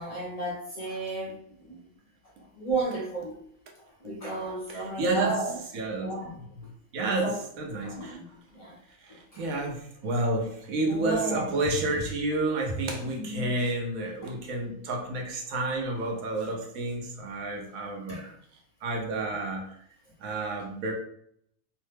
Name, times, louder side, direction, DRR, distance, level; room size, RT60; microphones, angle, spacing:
voice 1, 0.0-1.9 2.6-3.3 3.8-5.6 6.0-6.4 7.0-7.4 7.7-8.3 8.5-8.8 9.3-9.4 10.9-11.5 13.2-13.5 14.2-14.3 18.1-18.3, right 2 dB, 40° left, -4 dB, 0.5 m, -33 dB
voice 2, 4.7-5.4 5.7-6.6 6.9-8.2 9.0-18.2 18.8-19.7 20.2-20.9, right 2 dB, 85° right, 0 dB, 1.1 m, -30 dB
3.1 x 2.1 x 3.2 m, 0.69 s
omnidirectional pair, 1.4 m